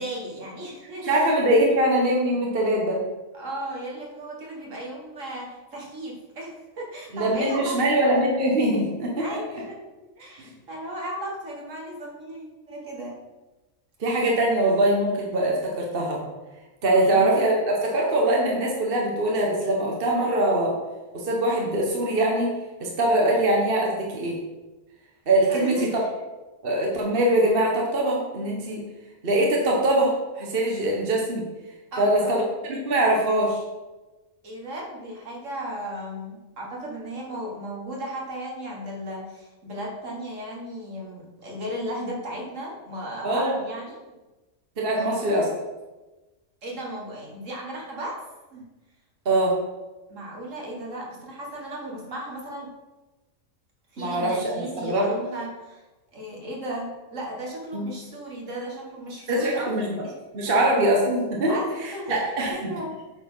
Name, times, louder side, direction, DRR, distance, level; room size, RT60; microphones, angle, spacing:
voice 1, 0.0-1.4 3.3-7.8 9.2-9.8 10.2-13.1 17.0-17.4 25.5-26.1 31.9-32.4 34.4-44.1 44.9-45.5 46.6-48.1 48.5-48.6 50.1-52.7 53.9-55.8 56.1-60.1 60.5-60.6 61.5-63.0, right 1 dB, 65° right, -2 dB, 2.1 m, -35 dB
voice 2, 1.1-3.0 7.1-9.4 10.4-10.5 14.0-16.2 16.8-20.7 21.1-22.5 22.8-24.4 25.3-25.8 26.6-28.8 29.2-31.4 32.0-32.4 32.7-33.6 43.2-43.5 44.8-45.4 49.2-49.6 54.0-55.1 57.7-57.9 59.3-59.9 60.3-61.6 61.8-62.5, right 1 dB, 45° right, -2 dB, 1.4 m, -22 dB
8.5 x 4.2 x 5.5 m, 1.1 s
omnidirectional pair, 1.4 m